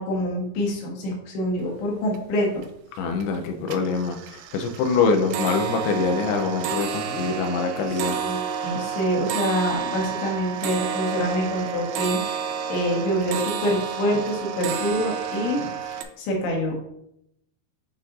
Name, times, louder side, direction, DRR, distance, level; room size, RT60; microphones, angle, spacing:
voice 1, 0.0-2.5 7.1-7.2 7.9-16.8, equal, 75° left, -1 dB, 3.5 m, -26 dB
sound 1, 1.7-1.8 2.1-2.7 3.1-3.4 3.7-16.0, right 7 dB, 80° right, 2.8 m, -30 dB
voice 2, 3.0-8.2, left 4 dB, 90° left, 4 dB, 2.4 m, -24 dB
9.0 x 4.2 x 2.6 m, 0.77 s
omnidirectional pair, 5.4 m